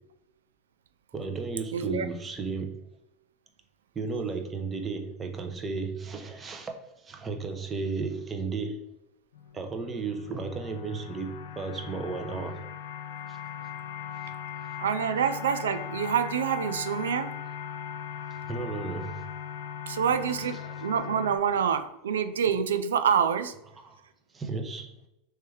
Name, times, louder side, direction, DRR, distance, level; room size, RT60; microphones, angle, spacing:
voice 1, 1.1-2.8 3.9-8.8 9.5-12.6 13.3-13.4 18.5-19.2 20.0-20.7 23.7-23.8 24.3-24.9, right 4 dB, 25° right, 4 dB, 0.7 m, -34 dB
voice 2, 1.7-2.1 14.8-17.4 19.9-23.5, right 7 dB, 85° right, 10 dB, 0.3 m, -27 dB
sound 1, 9.3-21.4, left 8 dB, 80° left, 0.3 m, -39 dB
3.2 x 3.1 x 3.2 m, 0.89 s
hypercardioid pair, 90°, 0 cm